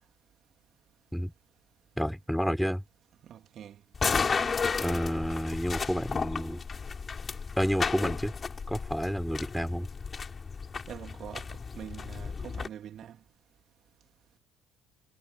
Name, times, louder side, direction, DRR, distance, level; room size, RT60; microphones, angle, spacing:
voice 1, 2.0-2.8 4.8-6.6 7.6-8.3 8.7-9.9, equal, ahead, 5.1 m, -30 dB
voice 2, 3.3-3.8 10.9-13.2, right 10 dB, 55° right, 3.3 m, -44 dB
sound 1, 3.9-12.7, left 5 dB, 35° left, 6.4 m, -33 dB
hypercardioid pair, 55°, 0 cm